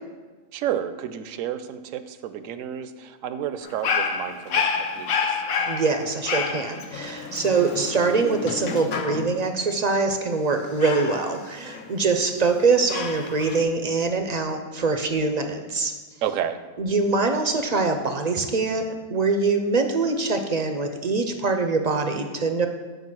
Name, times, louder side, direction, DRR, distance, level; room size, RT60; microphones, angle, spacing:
voice 1, 0.5-5.4 16.2-16.6, right 10 dB, 75° right, 11 dB, 1.0 m, -31 dB
Dog, 3.6-9.5 10.8-12.3 12.9-13.6, left 5 dB, 90° left, 1.2 m, -29 dB
voice 2, 5.7-15.9 16.8-22.7, right 4 dB, 50° right, 6 dB, 0.5 m, -24 dB
8.0 x 4.8 x 6.1 m, 1.3 s
omnidirectional pair, 1.4 m